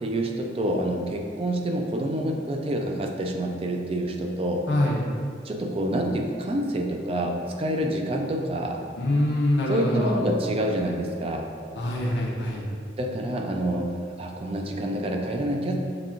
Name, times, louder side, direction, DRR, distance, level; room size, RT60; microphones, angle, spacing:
voice 1, 0.0-4.7 5.4-8.8 9.7-11.5 13.0-15.8, right 1 dB, 30° right, 2 dB, 0.4 m, -27 dB
voice 2, 4.7-5.1 9.0-10.3 11.8-12.6, left 1 dB, 65° left, -3 dB, 0.7 m, -24 dB
5.9 x 3.4 x 2.4 m, 2.2 s
head